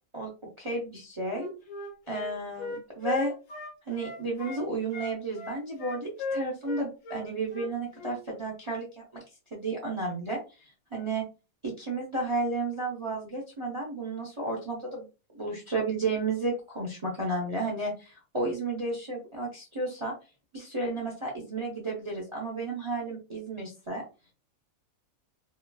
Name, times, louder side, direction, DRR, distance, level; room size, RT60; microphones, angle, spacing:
voice 1, 0.6-1.5 2.1-3.3 3.9-9.2 9.5-10.4 10.9-11.2 11.6-15.1 15.3-20.1 20.5-24.0, right 2 dB, 35° right, -2 dB, 0.5 m, -32 dB
Wind instrument woodwind instrument, 1.2-4.6 4.9-8.2, left 3 dB, 65° left, 1.0 m, -37 dB
3.0 x 2.3 x 2.2 m, 0.30 s
omnidirectional pair, 1.5 m